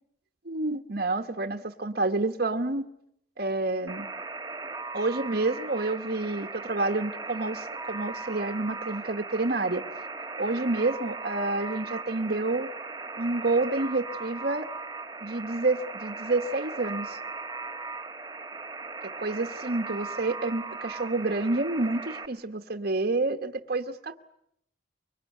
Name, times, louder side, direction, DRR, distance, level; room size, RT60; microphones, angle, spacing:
voice 1, 0.4-2.9 3.4-4.1 4.9-9.8 10.4-12.7 13.2-14.7 15.2-17.2 19.2-24.2, right 2 dB, 50° right, 5 dB, 1.2 m, -29 dB
Alarm, 3.9-22.3, right 3 dB, 20° right, 1.5 m, -38 dB
25.0 x 23.5 x 9.4 m, 0.75 s
head